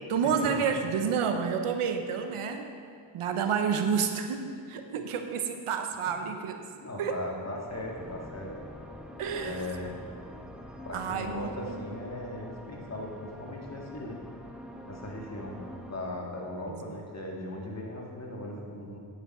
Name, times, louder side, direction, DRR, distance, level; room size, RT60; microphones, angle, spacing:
voice 1, 0.1-2.7 3.1-6.6 7.0-7.2 9.2-9.6 10.9-11.8 16.7-16.8, right 6 dB, 85° right, 6 dB, 0.8 m, -29 dB
voice 2, 6.8-8.5 9.3-10.0 10.8-14.2 14.9-19.0, left 1 dB, 30° left, -2 dB, 1.9 m, -38 dB
sound 1, 7.7-15.9, equal, ahead, 0.9 m, -46 dB
9.1 x 6.8 x 4.2 m, 2.3 s
cardioid pair, 60°, 50 cm